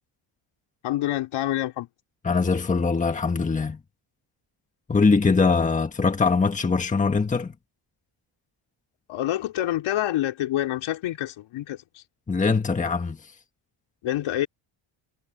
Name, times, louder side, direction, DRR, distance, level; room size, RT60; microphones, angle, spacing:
voice 1, 0.8-1.9 9.1-11.8 14.0-14.5, left 13 dB, 80° left, 4.7 m, -27 dB
voice 2, 2.2-3.8 4.9-7.5 12.3-13.2, left 4 dB, 15° left, 1.5 m, -22 dB
cardioid pair, 170°, 48 cm